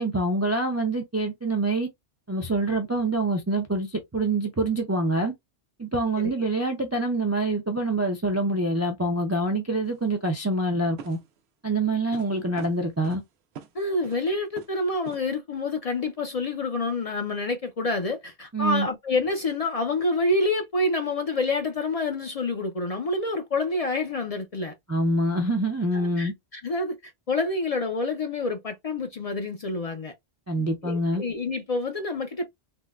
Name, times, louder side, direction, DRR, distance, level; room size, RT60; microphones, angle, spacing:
voice 1, 0.0-1.9 2.3-5.3 5.8-11.2 11.6-13.2 18.5-18.9 24.9-26.3 30.5-31.2, right 2 dB, 25° right, 0.3 m, -25 dB
sound 1, 9.8-10.0 11.0-11.4 12.1-12.3 12.6-13.2 13.5-13.7 14.0-14.3 14.6-14.8 15.0-15.2, right 6 dB, 90° right, 0.9 m, -42 dB
voice 2, 13.7-24.7 25.9-30.1 30.8-32.4, left 2 dB, 50° left, 0.5 m, -28 dB
3.5 x 2.1 x 2.3 m
omnidirectional pair, 1.0 m